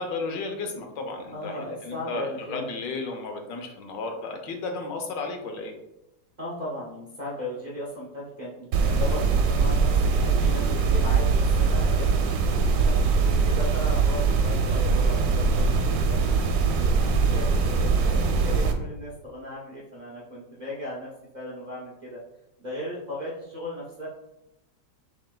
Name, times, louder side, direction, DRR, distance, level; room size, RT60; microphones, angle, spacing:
voice 1, 0.0-5.7, left 3 dB, 80° left, 4 dB, 1.4 m, -33 dB
voice 2, 1.3-2.7 6.4-22.2 22.6-24.1, left 1 dB, 45° right, -6 dB, 0.6 m, -37 dB
sound 1, 8.7-18.7, right 4 dB, 85° right, 1.3 m, -22 dB
6.8 x 3.3 x 2.2 m, 0.90 s
omnidirectional pair, 2.0 m